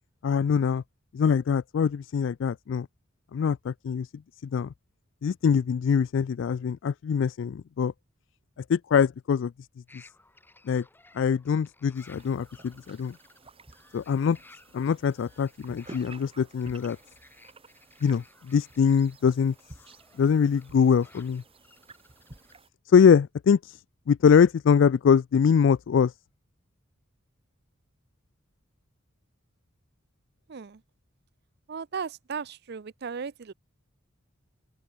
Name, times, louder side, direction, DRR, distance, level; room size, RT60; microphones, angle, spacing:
voice 1, 0.2-0.8 1.1-2.9 3.3-4.1 4.4-4.7 5.2-7.9 8.7-9.5 9.9-10.0 10.7-10.8 11.1-13.1 13.9-14.4 14.7-17.0 18.0-19.5 20.2-21.4 22.9-23.8 24.1-26.1, left 6 dB, 65° left, 0.3 m, -23 dB
sound 1, 9.9-22.6, left 2 dB, 10° left, 3.0 m, -58 dB
sound 2, 12.0-22.7, right 2 dB, 30° right, 3.7 m, -52 dB
voice 2, 30.5-30.8 31.7-33.5, right 6 dB, 50° right, 0.5 m, -36 dB
open air
head